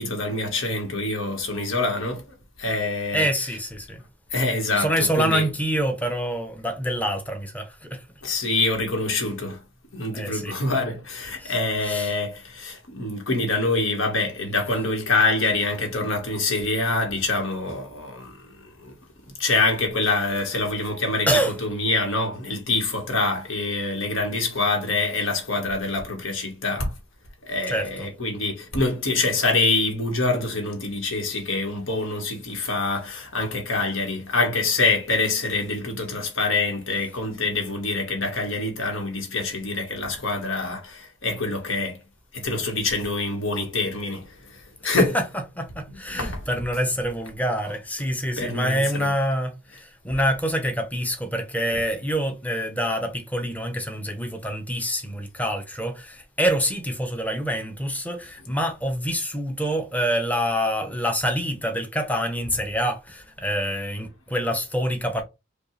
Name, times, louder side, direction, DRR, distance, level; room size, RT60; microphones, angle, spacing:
voice 1, 0.0-2.3 2.6-3.6 4.3-5.5 8.2-9.6 9.9-18.9 19.4-26.9 27.4-42.0 42.3-45.2 45.9-46.8 47.6-47.8 48.4-49.1 58.4-58.5, left 3 dB, 75° left, 1.4 m, -25 dB
voice 2, 3.1-4.0 4.8-8.0 10.1-10.5 11.4-11.5 11.8-12.1 21.3-21.5 27.7-28.1 44.8-45.2 45.6-65.2, equal, 10° left, 0.7 m, -26 dB
5.2 x 2.3 x 3.2 m
head